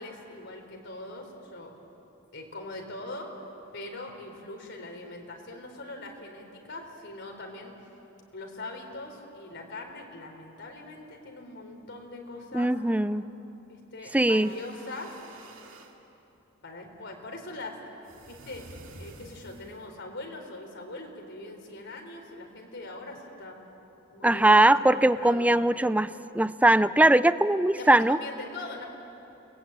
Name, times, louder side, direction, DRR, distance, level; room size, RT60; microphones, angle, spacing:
voice 1, 0.0-1.7 2.3-3.5 3.7-7.7 8.3-12.7 13.7-15.2 16.6-17.8 18.3-18.7 19.0-23.6 24.1-25.7 27.8-28.9, left 2 dB, 60° left, 2 dB, 4.1 m, -41 dB
voice 2, 12.5-13.2 14.1-14.5 24.2-26.1 26.3-28.2, right 1 dB, 5° right, 14 dB, 0.5 m, -20 dB
sound 1, 14.2-16.0 18.0-19.9, right 2 dB, 75° right, 2.6 m, -50 dB
30.0 x 20.5 x 9.0 m, 3.0 s
head